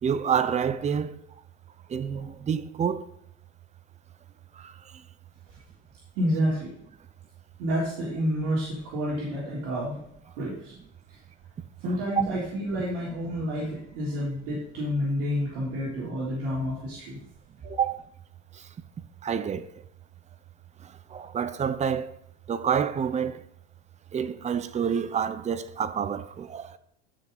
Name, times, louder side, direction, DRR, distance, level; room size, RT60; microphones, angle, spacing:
voice 1, 0.0-1.1 1.9-3.1 4.6-4.7 11.8-12.3 17.8-18.0 19.2-19.7 20.8-22.1 22.5-23.4 24.1-26.8, right 7 dB, 20° right, 0.5 m, -28 dB
voice 2, 6.2-6.7 7.6-10.0 10.4-10.7 11.8-17.2, equal, 70° right, 3.3 m, -29 dB
12.5 x 5.5 x 3.9 m
supercardioid pair, 120°, 33 cm